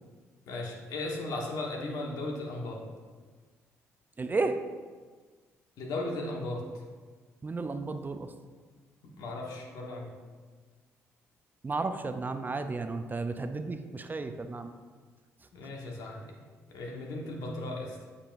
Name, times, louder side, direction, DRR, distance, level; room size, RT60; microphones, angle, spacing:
voice 1, 0.5-2.8 5.8-6.8 9.0-10.1 15.5-16.3 16.7-18.0, left 2 dB, 70° left, 0 dB, 1.3 m, -36 dB
voice 2, 4.2-4.6 7.4-8.3 11.6-14.7, right 3 dB, 30° right, 8 dB, 0.5 m, -33 dB
8.5 x 5.5 x 2.5 m, 1.5 s
hypercardioid pair, 55°, 7 cm